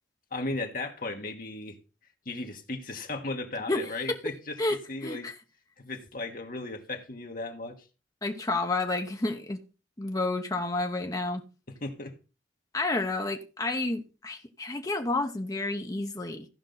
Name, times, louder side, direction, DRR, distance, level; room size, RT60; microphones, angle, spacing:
voice 1, 0.3-1.8 2.2-4.6 4.9-5.3 5.8-7.8 11.7-12.2, left 2 dB, 50° left, 1.5 m, -36 dB
voice 2, 3.7-4.2 4.6-5.3 8.2-9.6 10.0-11.4 12.7-16.5, left 2 dB, 20° left, 0.9 m, -30 dB
15.0 x 5.4 x 3.9 m
head